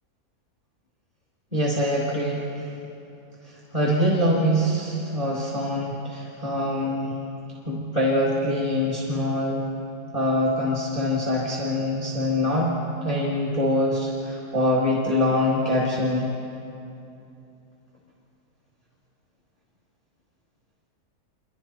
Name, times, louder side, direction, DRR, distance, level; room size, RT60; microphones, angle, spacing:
voice 1, 1.5-2.7 3.4-7.1 7.7-9.6 10.1-12.7 13.0-16.3, left 1 dB, 25° right, -4 dB, 2.6 m, -24 dB
28.0 x 24.0 x 4.5 m, 2.8 s
omnidirectional pair, 1.6 m